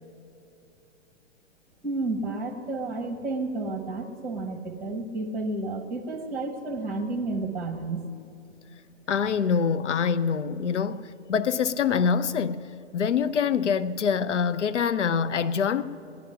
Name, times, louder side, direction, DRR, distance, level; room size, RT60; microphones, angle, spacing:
voice 1, 1.8-8.1, right 2 dB, 5° right, 0.8 m, -31 dB
voice 2, 9.1-12.6 12.9-15.8, left 6 dB, 80° left, 0.6 m, -25 dB
18.5 x 10.5 x 5.7 m
figure-of-eight pair, 115°, 35 cm